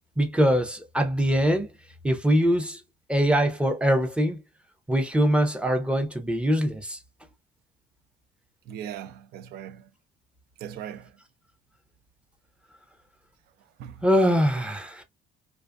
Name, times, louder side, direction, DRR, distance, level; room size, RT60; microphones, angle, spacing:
voice 1, 0.2-1.7 2.0-2.8 3.1-4.4 4.9-7.0 14.0-15.0, equal, 5° right, 0.6 m, -23 dB
voice 2, 8.7-9.9 10.6-11.1 13.8-14.1, right 10 dB, 70° right, 0.4 m, -39 dB
2.5 x 2.4 x 2.3 m
cardioid pair, 110°, 17 cm